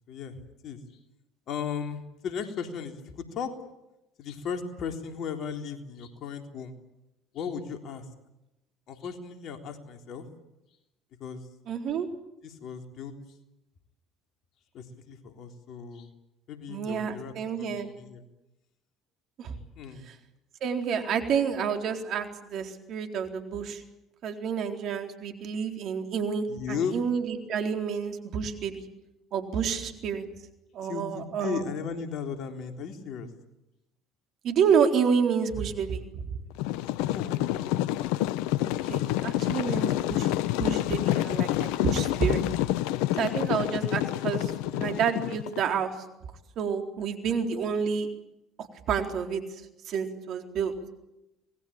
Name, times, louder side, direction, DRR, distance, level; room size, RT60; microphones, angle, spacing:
voice 1, 0.1-1.0 1.5-3.5 4.2-6.7 7.3-8.1 8.9-10.3 11.2-11.5 12.4-13.1 14.7-16.1 16.5-18.2 19.8-20.0 26.5-27.0 30.8-33.3 37.0-37.7 39.6-40.3, left 6 dB, 55° left, 5 dB, 3.7 m, -36 dB
voice 2, 11.7-12.1 16.7-17.9 19.4-19.5 20.1-20.2 20.6-23.8 24.2-28.8 29.3-30.2 30.7-31.6 34.4-36.2 38.6-42.4 43.2-46.0 46.6-48.1 48.6-49.4 49.8-50.7, right 7 dB, 55° right, 5 dB, 4.0 m, -29 dB
sound 1, 36.6-45.7, left 15 dB, 75° left, 0.9 m, -28 dB
26.5 x 20.5 x 8.8 m, 0.91 s
hypercardioid pair, 65°, 0 cm